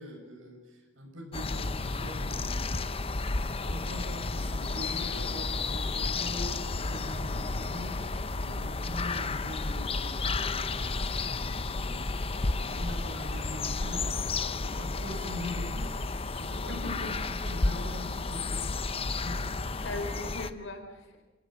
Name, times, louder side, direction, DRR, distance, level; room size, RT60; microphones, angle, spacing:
voice 1, 0.0-16.8 17.3-19.7, left 1 dB, 90° right, 1 dB, 6.7 m, -43 dB
sound 1, 1.3-20.5, left 3 dB, 30° left, 0.8 m, -32 dB
voice 2, 16.8-17.1 19.8-21.3, left 2 dB, 75° left, 6 dB, 4.4 m, -39 dB
28.5 x 17.5 x 7.6 m, 1.2 s
head